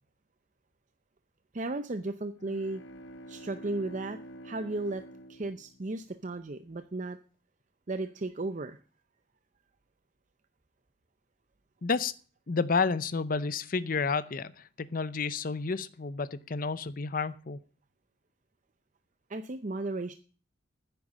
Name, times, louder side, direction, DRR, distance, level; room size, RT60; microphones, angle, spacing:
voice 1, 1.5-2.8 3.3-4.2 4.4-5.0 5.3-7.2 7.9-8.8 19.3-20.1, right 2 dB, 40° right, 0.6 m, -35 dB
sound 1, 2.3-6.4, equal, 80° left, 0.9 m, -48 dB
voice 2, 11.8-12.1 12.5-17.6, left 4 dB, 45° left, 0.6 m, -30 dB
10.0 x 9.4 x 7.3 m
head